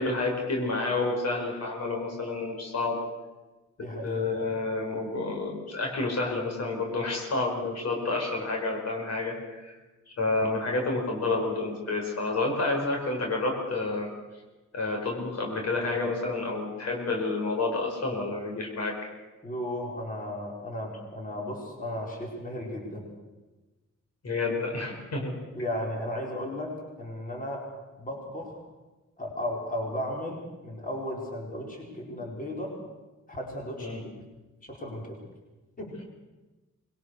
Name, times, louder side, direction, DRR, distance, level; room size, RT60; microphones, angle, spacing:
voice 1, 0.0-3.0 4.0-9.7 10.1-14.1 14.7-19.0 24.2-25.4 33.8-34.0, left 3 dB, 60° left, 1 dB, 5.1 m, -29 dB
voice 2, 3.8-4.5 19.4-23.1 25.5-27.7 28.0-28.6 29.2-32.8 33.3-34.1 34.6-35.2 35.8-35.9, left 1 dB, 30° left, -1 dB, 5.1 m, -35 dB
25.0 x 21.5 x 6.7 m, 1.2 s
wide cardioid pair, 155°, 29 cm